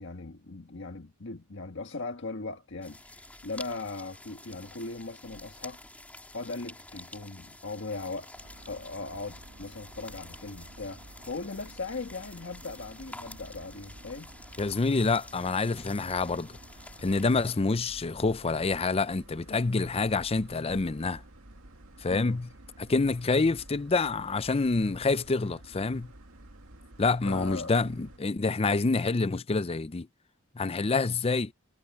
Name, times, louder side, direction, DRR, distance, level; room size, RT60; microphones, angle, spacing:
voice 1, 0.0-5.8 6.3-8.3 8.7-14.3 22.1-22.4 27.2-27.7, left 3 dB, 60° left, 1.5 m, -39 dB
sound 1, 2.8-17.6, left 1 dB, 5° left, 2.7 m, -49 dB
sound 2, 8.3-28.2, right 1 dB, 90° right, 2.3 m, -51 dB
voice 2, 14.6-16.6 17.0-21.2 22.0-22.5 22.8-26.1 27.0-30.1 30.5-31.5, left 3 dB, 30° left, 0.5 m, -27 dB
head